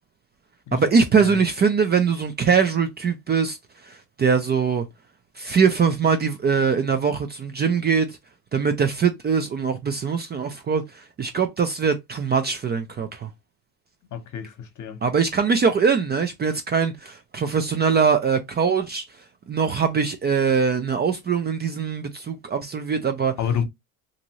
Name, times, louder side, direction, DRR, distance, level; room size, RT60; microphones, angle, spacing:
voice 1, 0.7-3.6 3.8-4.8 5.4-8.2 8.5-13.3 15.0-19.0 19.5-23.3, right 6 dB, 25° right, 0.4 m, -22 dB
voice 2, 14.1-15.0 23.4-23.6, left 8 dB, 45° left, 1.0 m, -28 dB
2.6 x 2.6 x 3.0 m
supercardioid pair, 90°, 42 cm